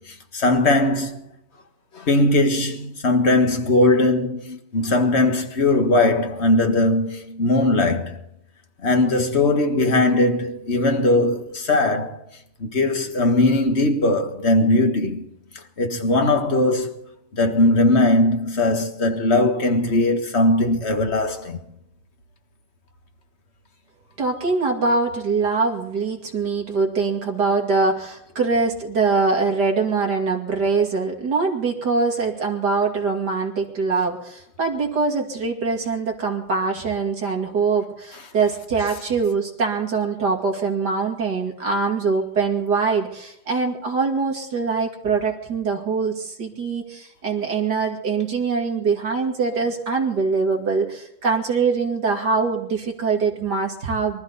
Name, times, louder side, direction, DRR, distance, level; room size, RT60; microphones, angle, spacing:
voice 1, 0.1-1.3 1.9-8.2 8.8-12.2 12.6-15.3 15.8-16.9 17.3-21.6, left 2 dB, 35° left, 1.8 m, -19 dB
voice 2, 24.2-54.2, right 4 dB, 50° right, 3.1 m, -23 dB
24.5 x 14.0 x 4.1 m
omnidirectional pair, 2.3 m